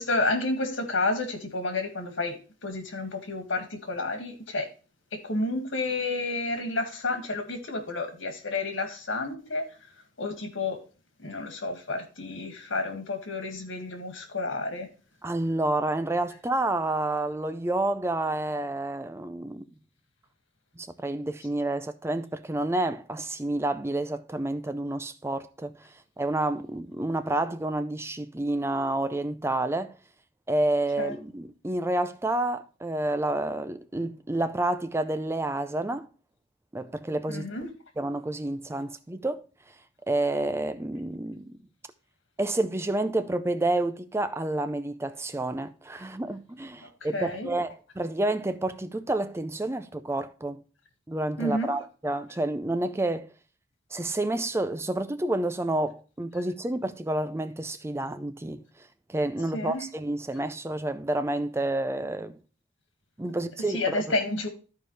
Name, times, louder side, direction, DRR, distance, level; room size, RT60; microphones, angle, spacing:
voice 1, 0.0-4.7 5.1-9.7 10.2-10.8 11.2-14.9 31.0-31.1 37.3-37.7 47.1-47.5 51.4-51.8 59.5-59.8 63.7-64.5, left 2 dB, 80° left, 1.9 m, -30 dB
voice 2, 15.2-19.7 20.8-30.0 30.5-36.1 36.7-37.5 38.0-39.4 40.1-41.6 42.4-50.6 51.1-53.3 53.9-62.4 63.2-64.2, right 2 dB, 15° right, 0.4 m, -29 dB
13.5 x 4.7 x 3.2 m
head